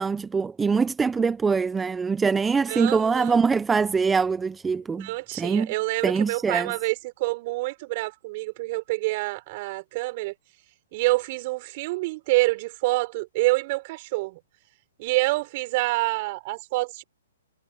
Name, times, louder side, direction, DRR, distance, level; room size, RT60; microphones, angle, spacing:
voice 1, 0.0-5.1 5.4-5.7 6.0-6.7, right 5 dB, 10° right, 0.8 m, -23 dB
voice 2, 2.7-3.4 5.0-10.3 10.9-14.4 15.0-17.0, right 22 dB, 40° right, 5.3 m, -27 dB
hypercardioid pair, 135°, 0 cm